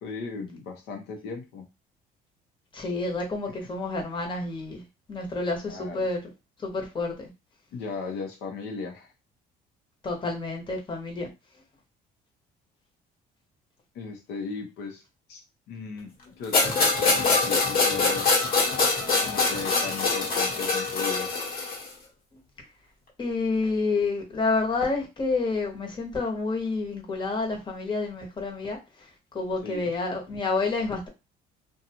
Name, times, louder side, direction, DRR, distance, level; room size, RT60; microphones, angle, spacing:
voice 1, 0.0-1.6 5.7-6.1 7.7-9.1 13.9-15.0 15.3-18.4 19.2-21.3 29.6-29.9, left 4 dB, 85° left, 0.7 m, -37 dB
voice 2, 2.7-4.8 5.1-6.2 6.6-7.3 10.0-11.3 23.2-29.1 29.3-31.1, left 3 dB, 30° left, 1.0 m, -29 dB
sound 1, 16.5-21.9, left 3 dB, 60° left, 1.1 m, -24 dB
2.6 x 2.3 x 2.8 m
cardioid pair, 110°, 17 cm